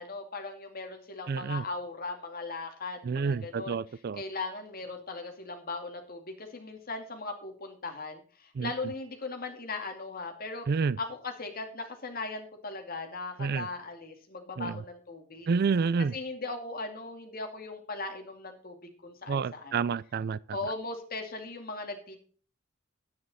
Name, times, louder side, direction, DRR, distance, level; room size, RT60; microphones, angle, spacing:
voice 1, 0.0-15.5 16.0-18.8 19.0-19.9 20.5-22.2, left 3 dB, 45° left, 2.4 m, -38 dB
voice 2, 1.3-1.6 3.1-4.2 8.6-8.7 10.7-11.0 13.4-13.7 14.6-14.7 15.5-16.1 19.3-20.4, right 5 dB, 50° right, 0.4 m, -29 dB
10.5 x 9.6 x 4.1 m
head